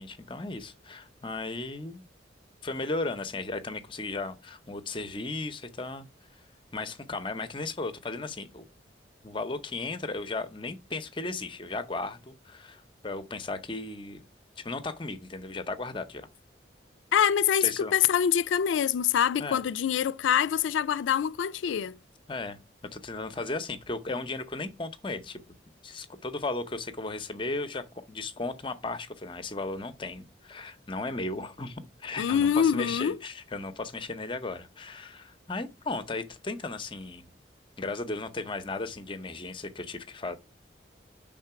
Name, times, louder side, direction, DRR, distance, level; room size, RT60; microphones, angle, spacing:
voice 1, 0.0-2.0 2.6-6.1 6.7-8.6 9.2-14.2 14.6-16.3 17.6-17.9 19.4-19.6 22.3-22.6 22.9-25.4 25.8-37.3 37.8-40.4, left 3 dB, 25° left, 0.6 m, -35 dB
voice 2, 17.1-22.0 32.2-33.2, left 8 dB, 85° left, 0.3 m, -25 dB
5.7 x 3.7 x 5.7 m
head